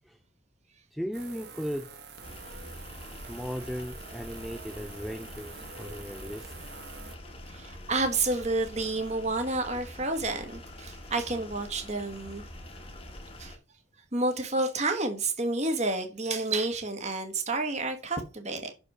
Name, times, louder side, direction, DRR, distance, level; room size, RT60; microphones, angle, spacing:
voice 1, 0.9-1.9 3.3-6.7 11.0-11.1, equal, ahead, 0.3 m, -37 dB
sound 1, 1.1-7.2, right 5 dB, 55° right, 1.2 m, -47 dB
sound 2, 2.2-13.6, left 1 dB, 30° left, 1.4 m, -45 dB
voice 2, 7.5-12.4 13.4-13.5 14.1-18.7, right 2 dB, 35° right, 1.4 m, -30 dB
6.2 x 5.2 x 5.4 m
head